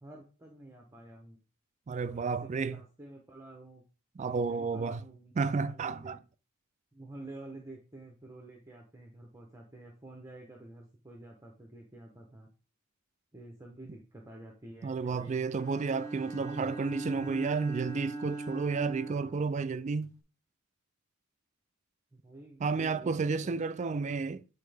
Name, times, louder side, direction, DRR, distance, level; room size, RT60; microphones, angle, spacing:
voice 1, 0.0-1.4 1.9-3.8 4.2-5.3 5.7-6.2 6.9-12.5 13.3-15.6 22.1-23.6 23.9-24.2, right 2 dB, 15° right, 0.8 m, -49 dB
voice 2, 1.9-2.8 4.2-5.0 5.3-6.2 14.8-20.2 22.6-24.4, right 4 dB, 35° right, 0.3 m, -31 dB
Bowed string instrument, 15.6-20.2, right 2 dB, 15° left, 0.9 m, -41 dB
8.3 x 4.2 x 3.4 m
head